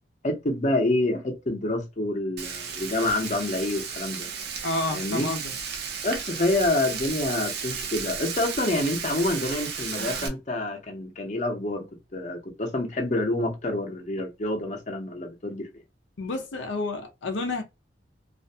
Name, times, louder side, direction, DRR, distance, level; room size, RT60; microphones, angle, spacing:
voice 1, 0.2-4.3 4.9-5.3 6.0-11.9 12.1-15.7, left 2 dB, 40° left, 0.7 m, -27 dB
Frying (food), 2.4-10.3, right 6 dB, 60° right, 0.6 m, -34 dB
voice 2, 4.6-5.5 16.2-17.6, left 2 dB, 85° left, 0.5 m, -30 dB
2.4 x 2.1 x 2.7 m
head